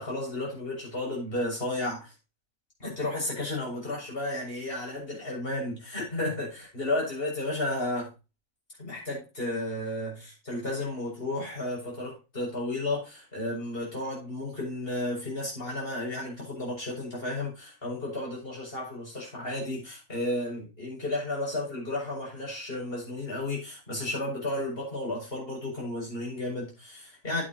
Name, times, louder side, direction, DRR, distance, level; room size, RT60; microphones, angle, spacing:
voice 1, 0.0-2.1 2.8-8.1 8.8-27.4, left 1 dB, 40° left, 7.5 m, -33 dB
10.0 x 10.0 x 3.0 m
omnidirectional pair, 1.5 m